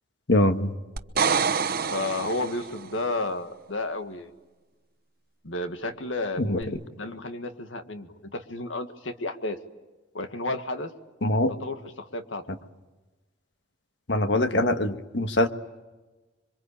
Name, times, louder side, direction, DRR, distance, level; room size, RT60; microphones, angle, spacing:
voice 1, 0.3-0.7 6.4-6.6 11.2-11.5 14.1-15.5, left 1 dB, 65° left, 8 dB, 1.5 m, -23 dB
sound 1, 1.0-2.9 6.6-6.7, right 5 dB, 50° right, 1.0 m, -26 dB
voice 2, 1.9-4.3 5.4-9.6 10.1-10.9 11.6-12.5, left 2 dB, 85° left, 8 dB, 1.9 m, -32 dB
26.5 x 24.0 x 8.7 m, 1.2 s
head